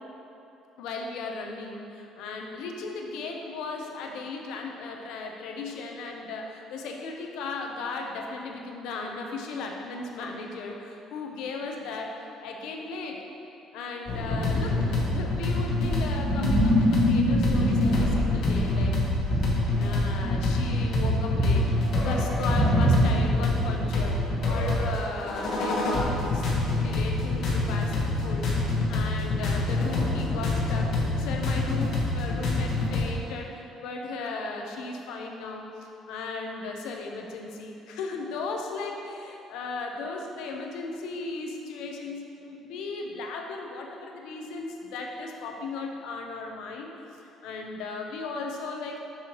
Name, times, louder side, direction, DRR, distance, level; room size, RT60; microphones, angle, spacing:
voice 1, 0.8-12.1 12.4-13.2 13.7-18.9 19.7-21.6 22.0-30.9 31.2-49.0, left 3 dB, 80° left, 2 dB, 0.7 m, -36 dB
sound 1, 14.1-33.1, left 2 dB, 60° left, 1.2 m, -27 dB
sound 2, 14.3-23.5, equal, 25° right, 1.0 m, -26 dB
7.5 x 5.7 x 3.0 m, 2.8 s
cardioid pair, 150°, 0 cm